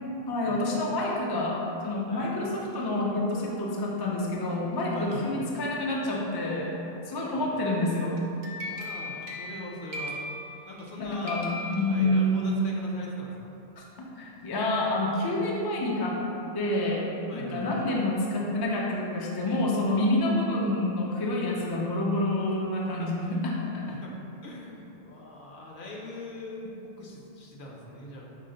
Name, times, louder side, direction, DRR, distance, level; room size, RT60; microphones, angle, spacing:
voice 1, 0.3-1.5 1.8-6.7 7.1-8.2 11.0-12.6 13.8-13.9 14.2-16.2 16.5-17.0 17.3-23.4 23.7-23.8, left 1 dB, 40° left, -3 dB, 0.3 m, -28 dB
voice 2, 4.8-5.3 7.1-7.5 8.7-10.2 10.7-11.5 11.8-13.5 17.3-17.7 22.8-23.4 23.9-24.1 24.4-28.3, left 1 dB, 60° left, -2 dB, 0.7 m, -42 dB
sound 1, 8.2-10.9 11.3-12.6, left 1 dB, 55° right, 0.7 m, -38 dB
5.5 x 2.1 x 3.7 m, 2.8 s
omnidirectional pair, 1.0 m